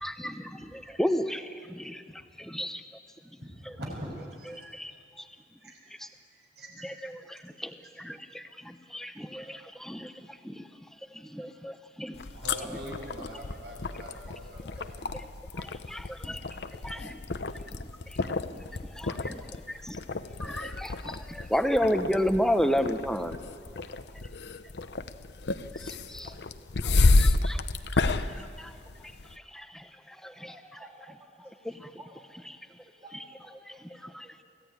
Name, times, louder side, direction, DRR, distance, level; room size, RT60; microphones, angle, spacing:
voice 1, 0.0-2.8 3.7-3.8 4.5-4.9 5.2-5.3 6.0-6.1 6.8-10.7 11.1-12.2 15.1-15.3 15.5-16.4 16.8-17.2 17.6-18.6 19.0-20.0 20.4-23.4 25.7-26.4 26.8-27.6 27.9-28.7 29.5-30.9 31.6-31.9 32.3-32.6 33.1-33.2 33.7-34.3, equal, 5° left, 8 dB, 0.8 m, -33 dB
voice 2, 3.4-5.0 5.6-5.8 6.3-6.9 9.3-9.5 12.3-15.0, equal, 65° right, -2 dB, 7.2 m, -43 dB
sound 1, 12.1-29.3, left 3 dB, 70° left, 0.8 m, -30 dB
voice 3, 30.5-31.5 32.0-32.2 33.0-33.8 34.2-34.3, right 2 dB, 20° right, -3 dB, 2.1 m, -51 dB
23.5 x 16.5 x 9.5 m, 2.3 s
head